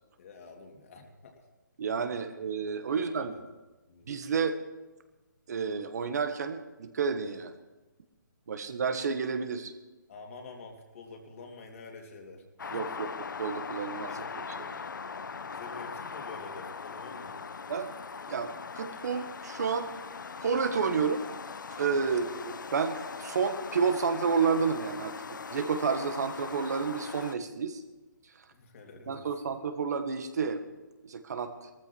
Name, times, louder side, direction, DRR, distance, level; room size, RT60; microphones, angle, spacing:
voice 1, 0.2-1.4 2.9-3.4 3.9-4.1 10.1-12.8 14.1-14.3 14.7-14.9 15.5-17.4 22.1-22.3 28.5-29.3, left 4 dB, 45° left, 1 dB, 3.0 m, -48 dB
voice 2, 1.8-3.3 4.1-4.6 5.5-7.5 8.5-9.7 12.7-13.1 13.4-14.1 14.6-14.7 17.7-17.9 18.3-19.9 20.4-21.2 21.7-25.1 25.5-27.8 29.1-30.6 31.0-31.5, right 5 dB, 55° right, 8 dB, 1.7 m, -30 dB
sound 1, 12.6-27.4, left 5 dB, 75° left, 0.8 m, -40 dB
17.5 x 14.5 x 4.6 m, 1.1 s
hypercardioid pair, 155°, 11 cm